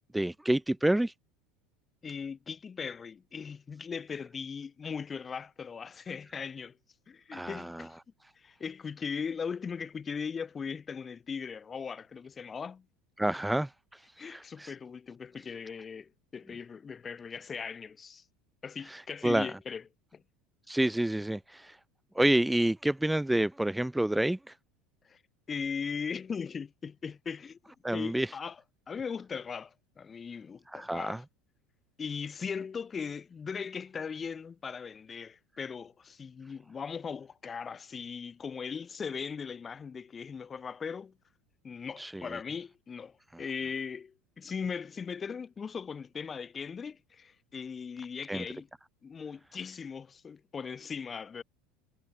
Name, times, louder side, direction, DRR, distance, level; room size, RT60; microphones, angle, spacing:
voice 1, 0.1-1.1 7.3-7.9 13.2-14.7 18.9-19.5 20.7-21.8 22.1-24.5 27.8-28.3 30.7-31.2 42.0-42.4 43.3-43.4 48.3-48.5, right 1 dB, 5° right, 2.1 m, -29 dB
voice 2, 2.0-6.8 7.1-8.0 8.4-12.8 14.2-18.2 18.6-19.8 20.1-20.2 25.0-25.2 25.5-27.6 27.9-28.6 28.9-31.2 32.0-41.1 41.6-48.7 49.0-51.4, left 6 dB, 25° left, 3.1 m, -39 dB
figure-of-eight pair, 70°, 0 cm